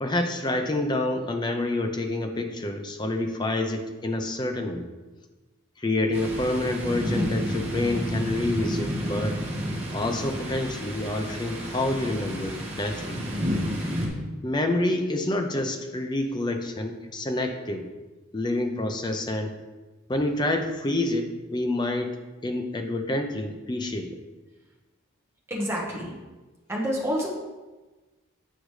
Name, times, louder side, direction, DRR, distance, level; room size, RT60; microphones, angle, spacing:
voice 1, 0.0-4.9 5.8-9.4 9.9-13.2 14.4-17.9 18.3-19.5 20.1-22.2 22.4-24.1, left 1 dB, 20° left, 5 dB, 0.5 m, -28 dB
Thunder, 6.1-14.1, equal, 30° right, 1.3 m, -31 dB
voice 2, 25.5-26.2 26.7-27.3, equal, 10° right, -3 dB, 1.0 m, -28 dB
8.1 x 5.0 x 3.2 m, 1.2 s
head